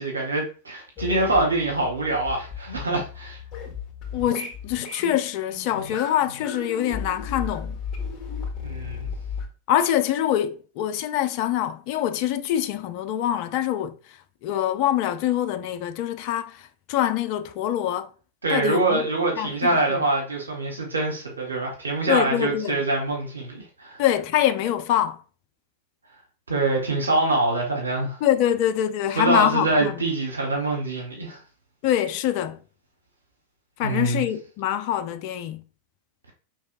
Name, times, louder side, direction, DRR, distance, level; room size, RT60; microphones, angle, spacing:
voice 1, 0.0-3.4 8.6-9.1 18.4-24.0 26.5-28.2 29.2-31.4 33.8-34.2, right 2 dB, 75° right, 1.2 m, -24 dB
sound 1, 1.0-9.5, left 5 dB, 25° left, 1.8 m, -35 dB
voice 2, 4.1-7.8 9.7-14.2 14.4-18.1 18.5-19.0 19.4-20.0 22.1-22.8 24.0-25.2 28.2-30.0 31.8-32.6 33.8-35.6, left 11 dB, 45° left, 0.5 m, -25 dB
5.3 x 3.2 x 2.5 m
figure-of-eight pair, 90°, 0 cm